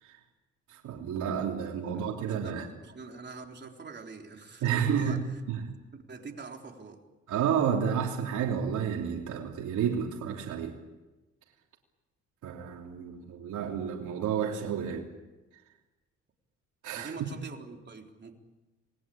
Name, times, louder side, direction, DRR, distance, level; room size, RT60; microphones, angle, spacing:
voice 1, 0.7-2.6 4.6-5.2 5.5-5.7 7.3-10.8 12.4-15.1 16.8-17.1, right 8 dB, 80° right, 0 dB, 3.2 m, -30 dB
voice 2, 1.7-5.2 6.1-7.0 17.0-18.4, right 4 dB, 35° right, 2 dB, 3.9 m, -44 dB
28.0 x 20.5 x 8.7 m, 1.1 s
cardioid pair, 90°, 30 cm